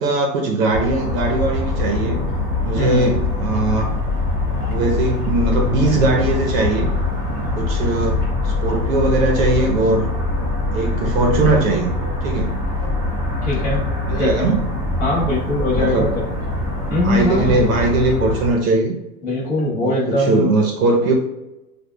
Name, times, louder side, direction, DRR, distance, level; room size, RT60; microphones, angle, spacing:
voice 1, 0.0-2.2 2.6-3.9 4.7-6.9 7.6-10.1 10.7-11.9 12.2-12.6 14.1-14.7 15.7-16.1 16.9-19.0 19.8-21.1, right 2 dB, 60° right, 2 dB, 0.7 m, -20 dB
sound 1, 0.7-18.5, left 2 dB, 10° right, 1.2 m, -23 dB
voice 2, 13.4-13.8 14.2-14.5 15.0-16.2 16.9-17.6 19.2-20.5, left 1 dB, 25° left, -5 dB, 1.1 m, -21 dB
6.6 x 2.3 x 2.2 m, 0.98 s
supercardioid pair, 170°, 48 cm